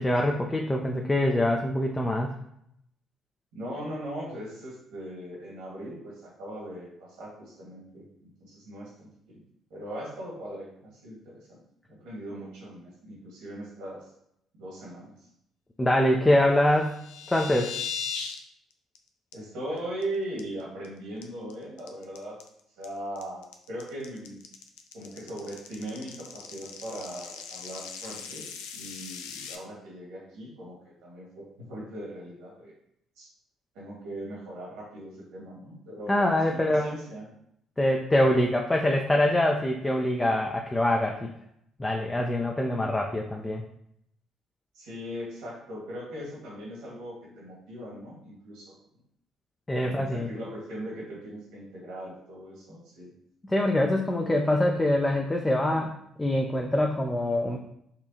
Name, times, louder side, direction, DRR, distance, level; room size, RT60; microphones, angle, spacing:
voice 1, 0.0-2.3 15.8-17.0 17.3-17.7 36.1-36.9 37.8-41.3 41.8-43.6 49.7-50.3 53.5-57.6, left 1 dB, 20° left, 1 dB, 0.4 m, -24 dB
voice 2, 3.5-9.4 9.7-11.6 11.9-14.1 14.5-15.1 19.3-22.4 22.8-24.4 24.9-32.7 33.2-33.3 33.7-37.3 44.7-48.7 49.8-53.1, right 1 dB, 75° right, -3 dB, 1.4 m, -39 dB
sound 1, 16.7-18.4 18.7-19.0 19.3-19.4 19.8-20.0 20.4-20.9 21.2-29.6, left 7 dB, 85° left, 0.3 m, -39 dB
4.2 x 2.4 x 2.7 m, 0.73 s
hypercardioid pair, 55°, 0 cm